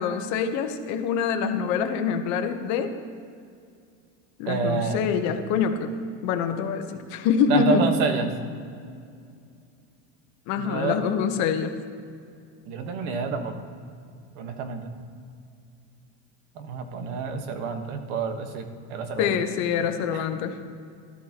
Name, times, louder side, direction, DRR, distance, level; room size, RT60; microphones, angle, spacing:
voice 1, 0.0-2.9 4.4-5.9 6.2-7.8 10.5-11.8 19.2-20.6, left 6 dB, 50° left, 7 dB, 1.0 m, -25 dB
voice 2, 4.5-5.0 7.5-8.3 10.6-11.0 12.6-13.6 14.3-14.9 16.5-19.3 20.1-20.3, right 5 dB, 75° right, 6 dB, 1.3 m, -28 dB
14.0 x 12.5 x 2.9 m, 2.4 s
cardioid pair, 160°, 35 cm